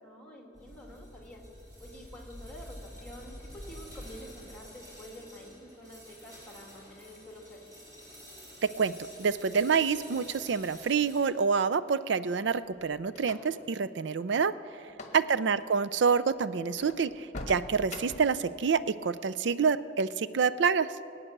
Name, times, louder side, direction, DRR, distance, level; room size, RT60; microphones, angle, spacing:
voice 1, 0.0-1.4 1.8-7.8 14.9-15.3, equal, 5° left, 0 dB, 2.2 m, -48 dB
sound 1, 0.5-11.2, equal, 20° right, 4.3 m, -49 dB
voice 2, 8.6-8.9 9.2-14.5 15.1-20.9, right 5 dB, 65° right, 14 dB, 0.4 m, -27 dB
sound 2, 12.3-13.7 14.9-15.2 15.5-15.7 16.2-16.3 16.7-18.4, left 2 dB, 40° left, 1.2 m, -43 dB
21.5 x 8.8 x 6.6 m, 2.8 s
head